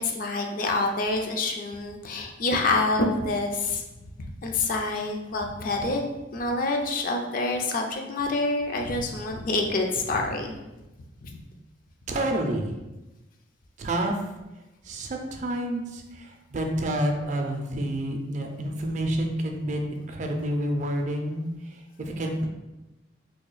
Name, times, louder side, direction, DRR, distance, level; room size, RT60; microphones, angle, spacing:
voice 1, 0.0-3.8 4.2-6.0 6.3-10.6 11.2-11.4, left 2 dB, 45° left, 2 dB, 0.4 m, -27 dB
voice 2, 12.1-12.8 13.8-14.2 14.8-22.5, right 1 dB, 40° right, 3 dB, 0.4 m, -29 dB
2.8 x 2.2 x 3.9 m, 1.0 s
head